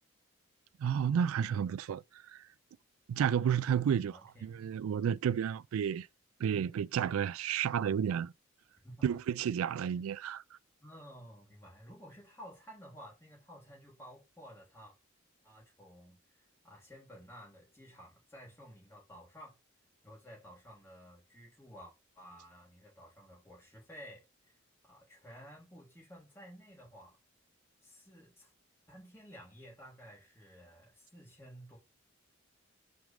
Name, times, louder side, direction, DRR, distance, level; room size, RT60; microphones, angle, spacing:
voice 1, 0.8-2.0 2.3-2.4 3.1-4.1 4.4-6.1 6.4-8.3 9.0-10.4, right 8 dB, 90° right, 0.3 m, -31 dB
voice 2, 3.8-4.7 8.8-9.2 10.8-14.9 15.4-19.6 20.0-24.6 24.9-27.2 27.8-28.5 28.9-31.8, equal, 10° left, 3.6 m, -53 dB
6.1 x 5.1 x 3.6 m
head